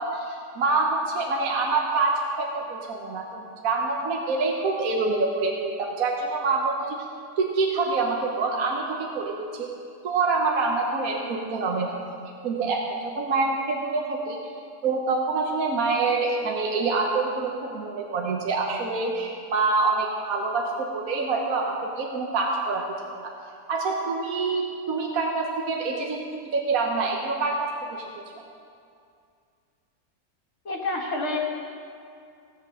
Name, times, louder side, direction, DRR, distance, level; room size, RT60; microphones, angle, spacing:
voice 1, 0.0-7.0 7.4-9.7 10.0-11.9 12.4-14.4 14.8-22.8 23.2-23.3 23.7-26.2 26.5-28.0, right 3 dB, 60° right, 0 dB, 1.4 m, -26 dB
voice 2, 30.6-31.4, left 2 dB, 45° left, -1 dB, 1.7 m, -28 dB
16.5 x 8.2 x 6.4 m, 2.4 s
omnidirectional pair, 1.8 m